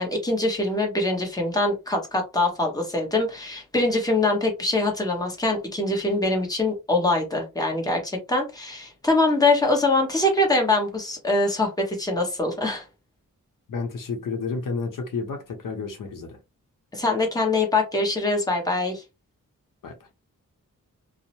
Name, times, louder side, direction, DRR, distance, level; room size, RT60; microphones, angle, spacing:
voice 1, 0.0-12.8 16.9-19.0, left 2 dB, 10° left, 1.0 m, -23 dB
voice 2, 13.7-16.4 19.8-19.9, left 4 dB, 75° left, 0.7 m, -31 dB
2.6 x 2.0 x 2.9 m
cardioid pair, 75°, 33 cm